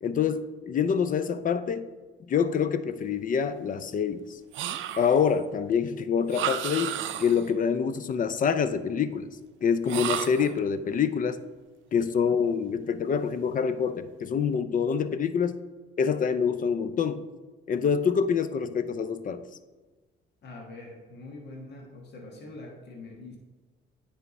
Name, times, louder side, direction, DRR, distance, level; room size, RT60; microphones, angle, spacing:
voice 1, 0.0-1.9 2.2-4.4 5.0-9.3 9.6-11.4 11.9-15.6 16.0-17.3 17.7-19.4, left 6 dB, 45° left, 12 dB, 0.5 m, -26 dB
sound 1, 4.5-5.3 6.3-7.5 9.8-10.6, right 11 dB, 75° right, 0.4 m, -32 dB
voice 2, 11.9-12.3 20.4-23.4, left 2 dB, 60° left, 0 dB, 1.4 m, -44 dB
9.5 x 3.5 x 4.1 m, 1.2 s
cardioid pair, 90°, 20 cm